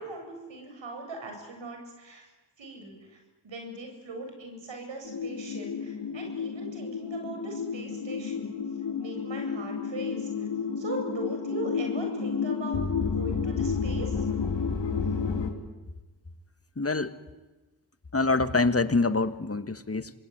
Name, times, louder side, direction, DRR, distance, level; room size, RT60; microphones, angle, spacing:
voice 1, 0.0-2.2 2.6-3.2 3.4-8.6 9.0-10.5 10.8-14.3, right 2 dB, 80° right, 4 dB, 7.7 m, -40 dB
sound 1, 5.0-15.5, left 5 dB, 75° left, 4.3 m, -31 dB
voice 2, 16.8-17.1 18.1-20.1, left 3 dB, 30° left, 10 dB, 1.7 m, -25 dB
26.5 x 21.5 x 9.5 m, 1.2 s
cardioid pair, 50°, 44 cm